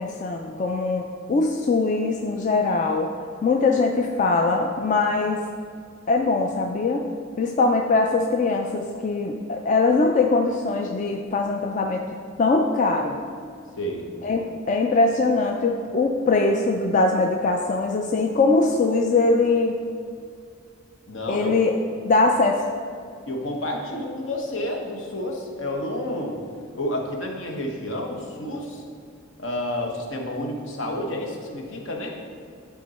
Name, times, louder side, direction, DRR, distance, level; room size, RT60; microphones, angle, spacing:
voice 1, 0.0-3.1 3.4-5.4 6.1-7.1 7.4-12.0 12.4-13.2 14.2-19.8 21.3-21.7 22.0-22.6, left 3 dB, 40° left, 2 dB, 0.3 m, -22 dB
voice 2, 13.8-14.1 21.1-21.5 23.3-26.3 26.7-28.8 29.4-32.1, left 1 dB, 70° left, 1 dB, 1.0 m, -30 dB
10.5 x 3.7 x 4.2 m, 2.3 s
head